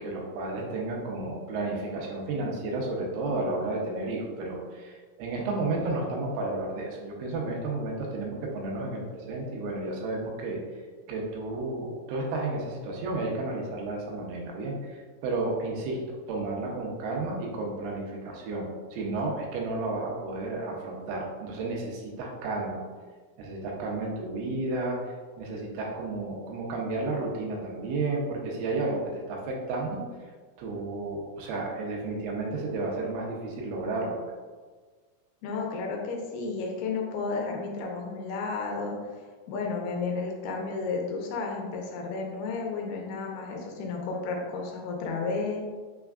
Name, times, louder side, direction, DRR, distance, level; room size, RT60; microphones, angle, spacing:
voice 1, 0.0-10.6 11.1-22.8 23.4-29.0 29.3-30.0 30.6-34.2, right 2 dB, 85° right, -1 dB, 2.7 m, -32 dB
voice 2, 35.4-39.0 39.5-45.6, left 4 dB, 85° left, 0 dB, 2.6 m, -32 dB
6.2 x 3.5 x 2.3 m, 1.4 s
omnidirectional pair, 4.5 m